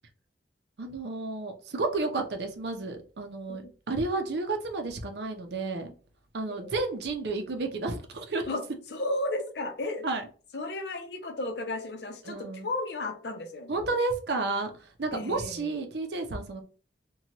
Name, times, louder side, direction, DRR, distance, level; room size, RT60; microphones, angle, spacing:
voice 1, 0.8-5.9 6.3-8.5 10.0-10.2 12.2-12.7 13.7-16.6, right 3 dB, 65° right, 5 dB, 0.6 m, -31 dB
voice 2, 8.9-10.1 10.5-13.8 15.1-15.8, left 2 dB, 65° left, 6 dB, 0.6 m, -34 dB
2.9 x 2.2 x 2.8 m, 0.38 s
head